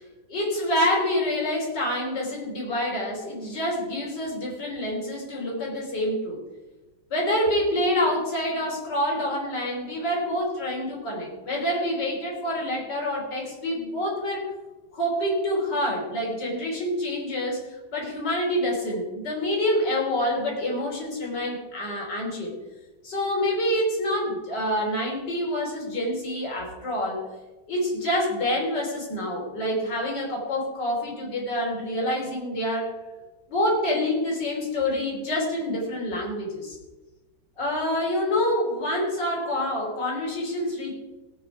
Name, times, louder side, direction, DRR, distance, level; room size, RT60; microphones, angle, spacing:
voice 1, 0.3-6.4 7.1-14.5 14.9-22.5 23.0-27.2 27.7-33.0 33.5-36.8 37.6-40.9, left 1 dB, 55° left, -2 dB, 4.0 m, -27 dB
17.5 x 8.4 x 4.8 m, 1.2 s
omnidirectional pair, 2.3 m